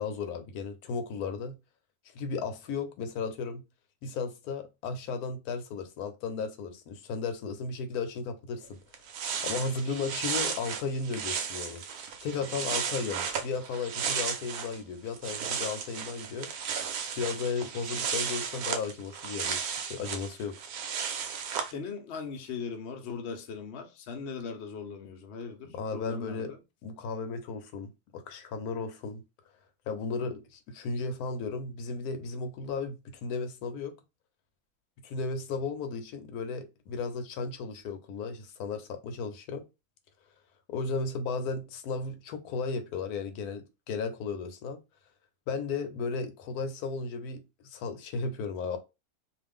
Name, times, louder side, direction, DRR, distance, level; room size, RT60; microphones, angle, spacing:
voice 1, 0.0-1.5 2.1-3.6 4.0-8.7 9.4-11.8 12.2-16.5 17.2-20.6 25.6-26.5 26.8-29.2 29.9-33.9 35.0-39.6 40.7-44.8 45.5-48.8, left 4 dB, 90° left, 1.1 m, -35 dB
sound 1, 8.6-8.7 8.9-14.8 15.1-21.7, right 7 dB, 80° right, 1.1 m, -34 dB
voice 2, 21.7-26.6, left 5 dB, 60° left, 0.8 m, -39 dB
2.5 x 2.4 x 3.4 m
omnidirectional pair, 1.6 m